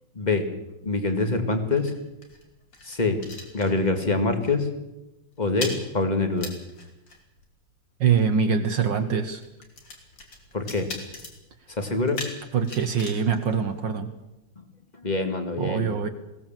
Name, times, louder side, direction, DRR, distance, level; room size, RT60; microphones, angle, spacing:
Metal Flask Twisting Open and Closed, 0.8-4.2 4.4-4.7 5.0-14.4, left 2 dB, 60° left, 3.8 m, -41 dB
voice 1, 0.8-1.9 2.9-3.2 3.5-4.7 5.4-6.5 10.5-10.9 11.8-12.2 15.0-15.9, left 3 dB, 20° left, 6 dB, 2.1 m, -25 dB
voice 2, 8.0-9.4 12.5-14.1 15.6-16.1, right 6 dB, 65° right, 7 dB, 1.7 m, -24 dB
21.5 x 17.5 x 7.5 m, 0.97 s
omnidirectional pair, 2.3 m